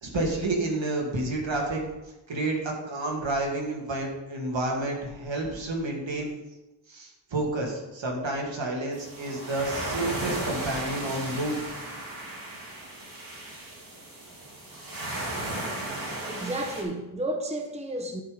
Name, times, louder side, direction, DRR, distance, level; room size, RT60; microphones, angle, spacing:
voice 1, 0.0-1.8 2.3-6.3 6.9-11.6, right 2 dB, 70° right, -1 dB, 2.5 m, -30 dB
sound 1, 8.9-16.8, right 1 dB, 45° right, 2.9 m, -35 dB
voice 2, 16.3-18.2, right 1 dB, 15° right, 4 dB, 1.0 m, -32 dB
11.5 x 5.6 x 5.4 m, 1.0 s
wide cardioid pair, 85°, 47 cm